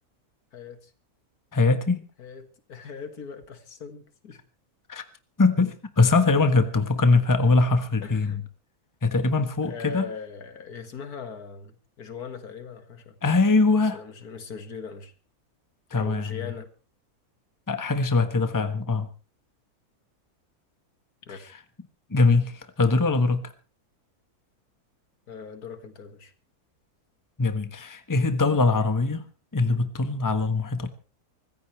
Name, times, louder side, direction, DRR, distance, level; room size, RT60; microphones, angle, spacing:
voice 1, 0.5-0.9 2.2-4.4 8.0-8.4 9.7-13.4 13.9-15.1 15.9-16.7 21.3-21.5 25.3-26.3, left 5 dB, 75° left, 2.2 m, -40 dB
voice 2, 1.5-2.0 4.9-5.0 5.4-8.4 9.0-10.1 13.2-14.0 15.9-16.3 17.7-19.1 21.3-21.4 22.1-23.4 27.4-29.3 29.5-30.9, left 3 dB, 15° left, 1.2 m, -22 dB
24.0 x 15.0 x 3.3 m
omnidirectional pair, 1.6 m